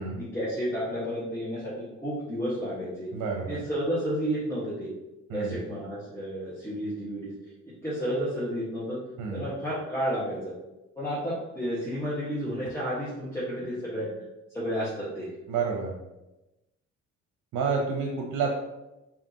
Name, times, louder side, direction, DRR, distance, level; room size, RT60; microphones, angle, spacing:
voice 1, 0.2-3.1 3.5-4.9 5.3-7.5 7.8-9.0 9.3-10.5 11.0-14.3 14.5-15.3, equal, 10° left, -10 dB, 1.3 m, -31 dB
voice 2, 3.1-3.6 5.3-5.6 9.2-9.5 15.5-16.0 17.5-18.6, right 5 dB, 80° right, 1 dB, 0.7 m, -29 dB
5.1 x 2.8 x 2.8 m, 0.99 s
cardioid pair, 90°, 30 cm